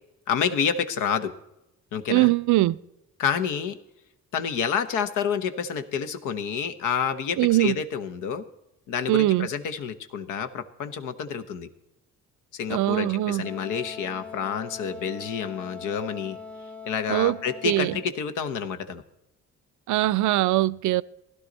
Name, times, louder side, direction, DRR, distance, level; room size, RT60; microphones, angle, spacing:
voice 1, 0.3-1.3 1.9-2.3 3.2-3.8 4.3-8.4 8.9-11.7 12.5-16.4 16.8-19.0, left 7 dB, 90° left, 1.1 m, -28 dB
voice 2, 2.1-2.8 7.4-7.8 9.1-9.5 12.7-13.4 17.1-17.4 17.6-18.0 19.9-21.0, right 17 dB, 80° right, 0.5 m, -21 dB
Wind instrument woodwind instrument, 13.4-18.1, left 5 dB, 5° left, 0.6 m, -41 dB
16.0 x 11.5 x 4.0 m
cardioid pair, 90°, 30 cm